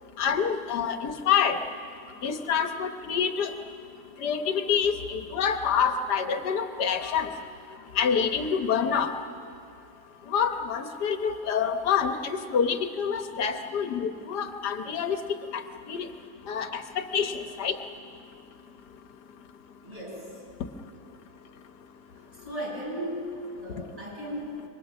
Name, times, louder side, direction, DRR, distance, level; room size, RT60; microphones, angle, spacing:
voice 1, 0.2-1.6 2.2-3.5 4.2-7.3 7.9-9.1 10.3-15.2 15.5-15.6 15.9-16.0 16.5-17.8, left 7 dB, 90° left, 7 dB, 1.7 m, -27 dB
voice 2, 19.8-20.3 22.1-24.6, equal, 20° right, -5 dB, 7.3 m, -36 dB
26.5 x 24.0 x 6.2 m, 2.5 s
omnidirectional pair, 1.7 m